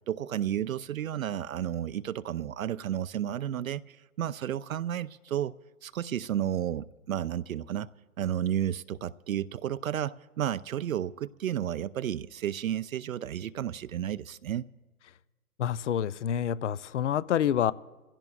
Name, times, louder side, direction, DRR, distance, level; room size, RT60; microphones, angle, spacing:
voice 1, 0.1-5.5 5.8-7.9 8.2-14.7, right 10 dB, 65° right, 0.5 m, -32 dB
voice 2, 15.6-17.7, left 9 dB, 55° left, 0.5 m, -27 dB
26.5 x 16.0 x 2.3 m
hypercardioid pair, 145°, 45 cm